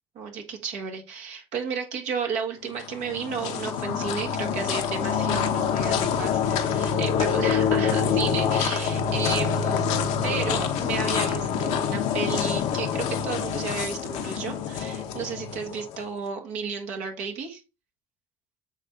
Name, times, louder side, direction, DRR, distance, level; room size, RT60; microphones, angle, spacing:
voice 1, 0.1-9.9 10.2-17.6, right 6 dB, 80° right, 3 dB, 1.6 m, -33 dB
sound 1, 2.7-16.0, left 7 dB, 75° left, 1.0 m, -26 dB
7.4 x 3.3 x 3.8 m, 0.27 s
supercardioid pair, 70°, 12 cm